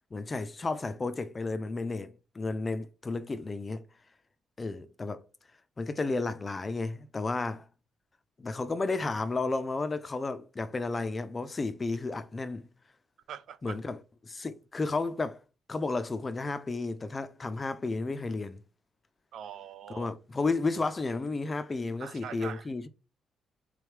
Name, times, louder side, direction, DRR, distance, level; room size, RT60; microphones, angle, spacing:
voice 1, 0.1-3.8 4.6-5.3 5.8-7.7 8.4-12.7 13.6-14.0 14.2-15.4 15.7-18.6 19.9-22.9, left 3 dB, 30° left, 0.4 m, -32 dB
voice 2, 13.3-13.8 19.3-20.1 22.0-22.6, right 8 dB, 70° right, 0.3 m, -42 dB
3.4 x 3.2 x 3.3 m
cardioid pair, 90°, 0 cm